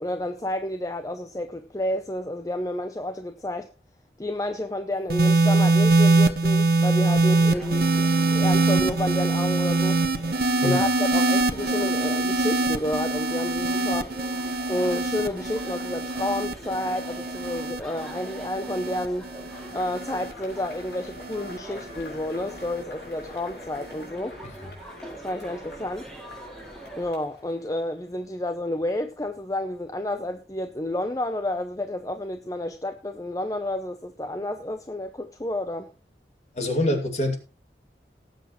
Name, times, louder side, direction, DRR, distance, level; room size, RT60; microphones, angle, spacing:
voice 1, 0.0-3.7 4.2-10.0 10.6-14.1 14.7-19.3 19.7-24.3 25.2-26.1 27.0-35.9, left 1 dB, 20° left, 0.6 m, -30 dB
sound 1, 5.1-21.6 22.5-22.8, right 2 dB, 60° right, 1.1 m, -23 dB
Bustling Cafe Ambience, 7.3-27.1, right 1 dB, 5° left, 2.7 m, -43 dB
Cheering / Applause / Crowd, 19.5-28.2, left 2 dB, 75° left, 5.9 m, -46 dB
voice 2, 36.5-37.4, left 1 dB, 40° left, 2.4 m, -25 dB
18.5 x 8.1 x 3.1 m
head